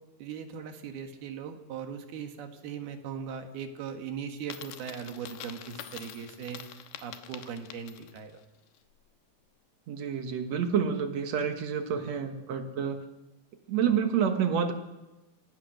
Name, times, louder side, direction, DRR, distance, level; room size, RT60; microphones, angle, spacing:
voice 1, 0.2-8.4, right 7 dB, 75° right, 6 dB, 3.5 m, -39 dB
Coin (dropping), 4.4-8.3, left 11 dB, 85° left, 3.1 m, -45 dB
voice 2, 9.9-13.0 13.7-14.7, right 7 dB, 60° right, 7 dB, 2.0 m, -28 dB
25.5 x 16.5 x 6.5 m, 1.0 s
omnidirectional pair, 4.5 m